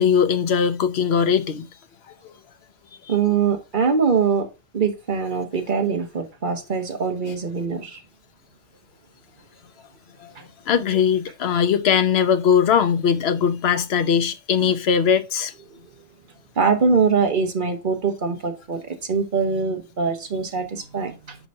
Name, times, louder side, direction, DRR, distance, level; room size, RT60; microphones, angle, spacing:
voice 1, 0.0-1.7 2.2-2.3 10.2-10.3 10.7-15.5, left 7 dB, 55° left, 0.9 m, -20 dB
voice 2, 3.1-4.5 4.7-8.0 10.3-10.4 16.6-21.4, right 5 dB, 40° right, 1.4 m, -23 dB
6.1 x 5.0 x 5.4 m
omnidirectional pair, 1.4 m